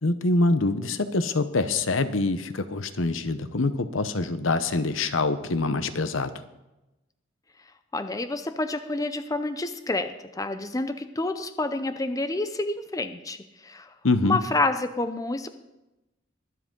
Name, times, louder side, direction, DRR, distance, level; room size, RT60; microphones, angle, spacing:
voice 1, 0.0-6.3 14.0-14.4, left 2 dB, 90° left, 11 dB, 0.9 m, -25 dB
voice 2, 7.9-13.4 13.6-13.9 14.2-15.5, left 2 dB, 20° left, 9 dB, 0.6 m, -28 dB
23.0 x 7.7 x 3.8 m, 0.98 s
head